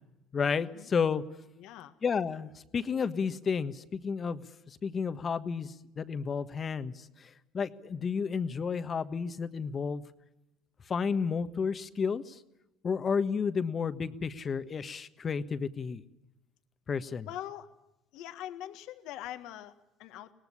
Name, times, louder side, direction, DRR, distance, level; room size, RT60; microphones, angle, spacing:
voice 1, 0.3-1.2 2.0-10.0 10.9-12.4 12.8-16.0 16.9-17.3, left 6 dB, 35° left, 12 dB, 1.4 m, -32 dB
voice 2, 1.6-1.9 17.3-17.8 18.1-20.3, left 12 dB, 70° left, 9 dB, 1.6 m, -43 dB
22.5 x 18.5 x 9.9 m, 0.91 s
supercardioid pair, 80°, 0 cm